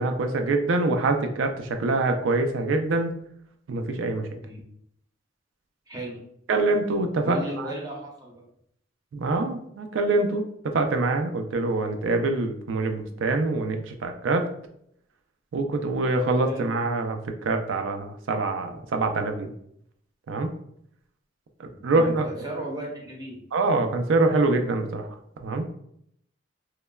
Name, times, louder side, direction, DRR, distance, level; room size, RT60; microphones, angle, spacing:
voice 1, 0.0-3.1 3.7-4.3 6.5-7.7 9.1-14.5 15.5-19.5 20.3-20.5 21.6-22.3 23.5-25.1 25.4-25.7, right 2 dB, 85° right, 6 dB, 0.4 m, -25 dB
voice 2, 5.9-6.2 7.2-8.4 16.5-16.7 21.9-23.4, right 1 dB, 20° right, -2 dB, 0.7 m, -35 dB
3.1 x 2.2 x 2.2 m, 0.71 s
head